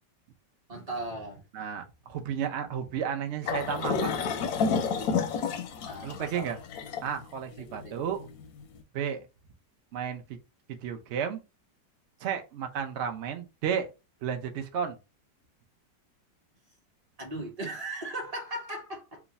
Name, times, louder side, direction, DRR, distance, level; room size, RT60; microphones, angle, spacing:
voice 1, 0.7-1.4 5.9-6.5 7.6-8.0 17.2-19.2, right 1 dB, 25° right, 0.9 m, -37 dB
voice 2, 1.5-4.2 6.0-6.6 7.0-8.3 8.9-9.2 9.9-10.2 10.7-11.4 12.2-13.9 14.2-15.0, right 8 dB, 70° right, 0.6 m, -32 dB
sound 1, 3.5-8.6, left 5 dB, 70° left, 0.9 m, -30 dB
3.1 x 2.4 x 4.0 m
omnidirectional pair, 1.9 m